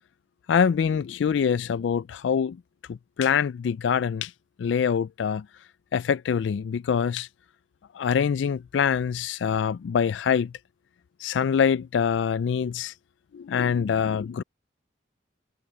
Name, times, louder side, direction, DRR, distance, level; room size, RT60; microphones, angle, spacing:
voice 1, 0.5-2.6 2.9-4.3 4.6-5.5 5.9-7.3 7.9-10.5 11.2-12.9 13.3-14.4, left 7 dB, 80° left, 0.3 m, -24 dB
head